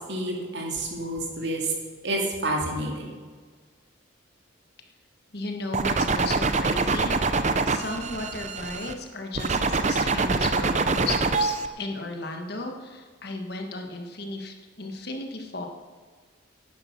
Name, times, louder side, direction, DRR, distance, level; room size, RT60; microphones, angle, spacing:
voice 1, 0.1-1.7 2.0-3.1, right 1 dB, 60° right, 0 dB, 2.5 m, -29 dB
voice 2, 5.3-15.7, left 2 dB, 55° left, 3 dB, 1.5 m, -35 dB
sound 1, 5.7-8.9 9.4-11.7, right 3 dB, 35° right, 0.6 m, -25 dB
11.0 x 9.4 x 6.0 m, 1.5 s
head